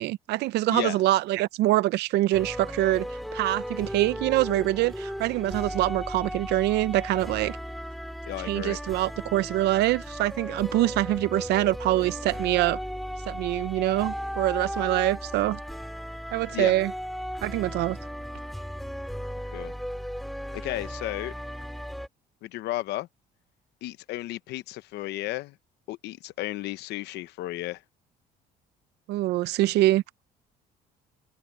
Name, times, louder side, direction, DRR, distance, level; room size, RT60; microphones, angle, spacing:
voice 1, 0.0-3.1 3.3-7.6 8.4-12.8 13.3-15.6 16.3-16.9 17.4-18.0 29.1-30.0, right 16 dB, 80° right, 0.7 m, -24 dB
sound 1, 2.3-22.1, equal, ahead, 5.2 m, -36 dB
voice 2, 8.3-8.8 16.5-16.7 19.5-19.7 20.6-21.3 22.4-23.1 23.8-25.5 25.9-27.8, left 16 dB, 80° left, 0.9 m, -33 dB
cardioid pair, 110°, 17 cm